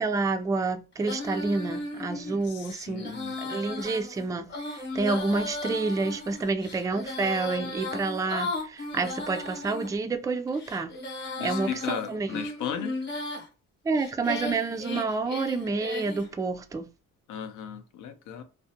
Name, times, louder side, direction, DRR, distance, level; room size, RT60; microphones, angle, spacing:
voice 1, 0.0-3.1 3.4-10.9 11.4-12.3 13.8-16.9, right 3 dB, 10° right, 0.3 m, -29 dB
Female singing, 1.0-9.9 10.5-13.5 14.0-16.3, left 2 dB, 40° left, 0.9 m, -36 dB
voice 2, 2.4-3.4 11.4-13.0 17.3-18.4, left 8 dB, 80° left, 0.6 m, -36 dB
2.5 x 2.1 x 2.6 m
cardioid pair, 90°, 30 cm